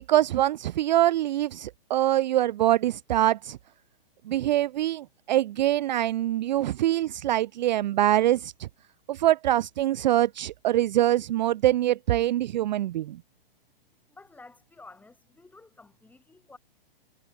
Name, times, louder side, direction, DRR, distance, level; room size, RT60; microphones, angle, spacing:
voice 1, 0.0-3.6 4.3-8.7 9.1-13.2, right 13 dB, 50° right, 0.5 m, -24 dB
voice 2, 14.1-16.6, left 3 dB, 5° left, 6.3 m, -51 dB
hypercardioid pair, 135°, 29 cm